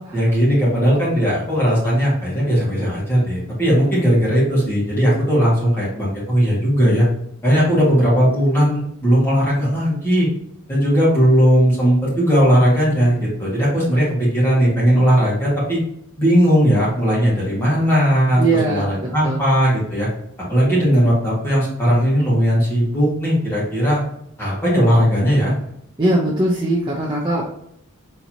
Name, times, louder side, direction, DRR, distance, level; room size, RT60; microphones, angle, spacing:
voice 1, 0.1-7.1 7.4-10.3 10.7-15.8 16.2-20.1 20.5-24.0 24.4-25.5, equal, 10° left, -7 dB, 1.8 m, -17 dB
voice 2, 18.4-19.4 26.0-27.5, right 2 dB, 20° right, -4 dB, 0.6 m, -20 dB
4.5 x 4.0 x 2.8 m, 0.75 s
head